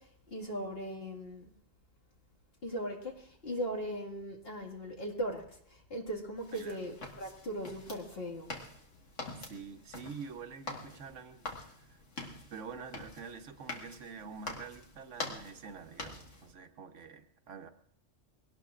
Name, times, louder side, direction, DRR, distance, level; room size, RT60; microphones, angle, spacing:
voice 1, 0.0-1.5 2.6-8.6, equal, 50° left, 0 dB, 2.2 m, -39 dB
sound 1, 6.4-16.5, left 2 dB, 75° left, 2.0 m, -46 dB
voice 2, 9.4-12.0 12.5-17.7, right 5 dB, 80° right, 7 dB, 1.2 m, -47 dB
22.5 x 18.0 x 2.5 m, 0.64 s
omnidirectional pair, 1.3 m